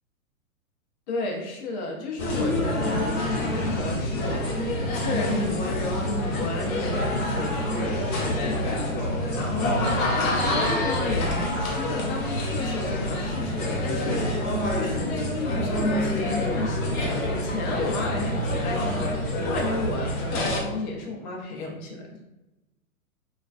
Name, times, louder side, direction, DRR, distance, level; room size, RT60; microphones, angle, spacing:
voice 1, 1.1-4.7 5.0-22.0, left 2 dB, 35° left, -1 dB, 0.4 m, -33 dB
sound 1, 2.2-20.6, left 1 dB, 65° left, 0.8 m, -27 dB
2.4 x 2.2 x 2.3 m, 1.0 s
hypercardioid pair, 120°, 43 cm